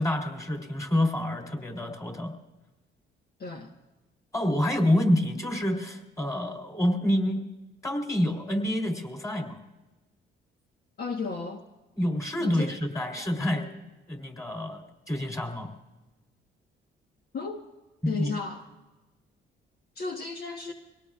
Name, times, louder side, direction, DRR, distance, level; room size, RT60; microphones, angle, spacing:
voice 1, 0.0-2.3 4.3-7.4 7.8-9.6 12.0-13.7 14.1-15.7 18.0-18.4, left 1 dB, 15° left, 3 dB, 3.5 m, -27 dB
voice 2, 3.4-3.7 11.0-11.6 12.4-12.7 13.1-13.3 17.3-17.6 18.1-18.7 19.9-20.7, left 4 dB, 55° left, 2 dB, 1.3 m, -34 dB
24.0 x 18.5 x 2.4 m, 1.1 s
cardioid pair, 90°, 20 cm